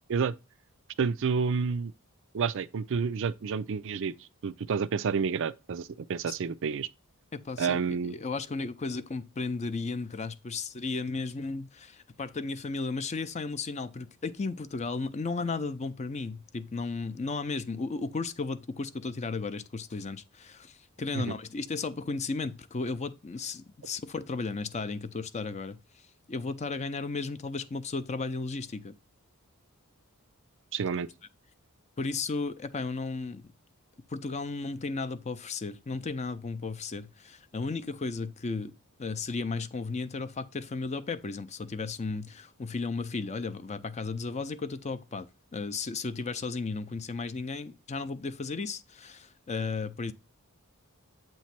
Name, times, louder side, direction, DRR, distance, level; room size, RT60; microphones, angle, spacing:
voice 1, 1.0-1.9 2.3-4.1 4.4-6.9 7.6-8.1 21.1-21.3 30.7-31.1, right 5 dB, 60° right, 0.4 m, -29 dB
voice 2, 7.3-25.8 26.3-28.9 32.0-33.5 34.1-50.1, left 4 dB, 30° left, 0.5 m, -34 dB
8.2 x 3.1 x 5.7 m
head